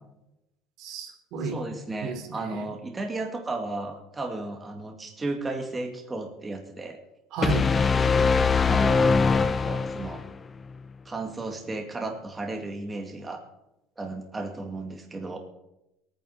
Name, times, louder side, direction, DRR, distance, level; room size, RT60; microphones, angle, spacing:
voice 1, 0.8-1.6 2.0-2.6 7.3-7.6, right 3 dB, 65° right, 5 dB, 3.2 m, -31 dB
voice 2, 1.4-7.0 8.7-10.2 11.1-13.4 14.0-15.4, right 2 dB, 20° right, 3 dB, 2.2 m, -34 dB
sound 1, 7.4-10.3, left 5 dB, 25° left, 0.7 m, -22 dB
18.0 x 9.5 x 7.0 m, 0.90 s
supercardioid pair, 110°, 0 cm